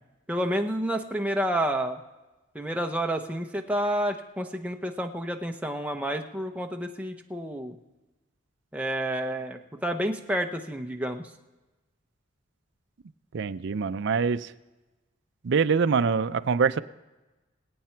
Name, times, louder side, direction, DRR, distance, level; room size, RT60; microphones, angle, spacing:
voice 1, 0.3-2.0 2.5-7.8 8.7-11.2, right 1 dB, 5° right, 3 dB, 0.8 m, -29 dB
voice 2, 13.3-14.5 15.4-16.8, right 5 dB, 60° right, 12 dB, 0.4 m, -24 dB
24.5 x 8.4 x 4.5 m, 1.1 s
head